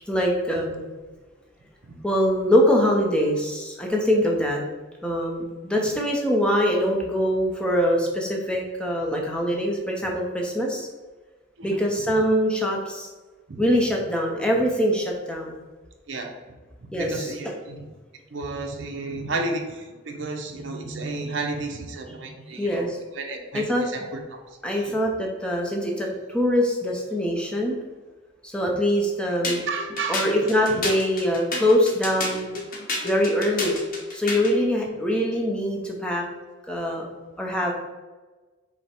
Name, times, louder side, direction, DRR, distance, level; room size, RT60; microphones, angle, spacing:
voice 1, 0.1-0.8 2.0-4.6 5.0-10.9 11.6-13.1 13.6-15.6 16.9-17.3 22.6-23.0 23.5-23.8 24.6-27.8 28.4-29.6 30.1-32.5 33.0-33.8 34.1-36.3 36.7-37.1 37.4-37.7, equal, 5° left, -1 dB, 0.6 m, -23 dB
voice 2, 16.9-17.8 18.3-22.8 23.1-24.2 24.7-24.9 29.7-30.5, right 3 dB, 65° right, 3 dB, 0.7 m, -32 dB
sound 1, 29.4-34.6, left 2 dB, 45° left, 0.8 m, -30 dB
5.6 x 2.1 x 4.3 m, 1.3 s
head